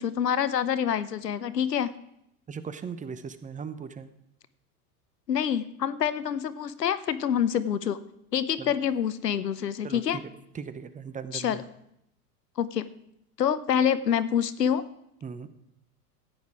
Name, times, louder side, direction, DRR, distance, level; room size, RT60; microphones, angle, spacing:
voice 1, 0.0-1.9 5.3-8.0 8.3-10.2 11.3-11.6 12.6-12.9 13.4-14.8, left 8 dB, 90° left, 15 dB, 0.8 m, -26 dB
voice 2, 2.5-4.1 8.6-8.8 9.8-11.6 15.2-15.5, right 6 dB, 15° right, 12 dB, 0.8 m, -38 dB
14.5 x 9.4 x 4.8 m, 0.79 s
hypercardioid pair, 90°, 47 cm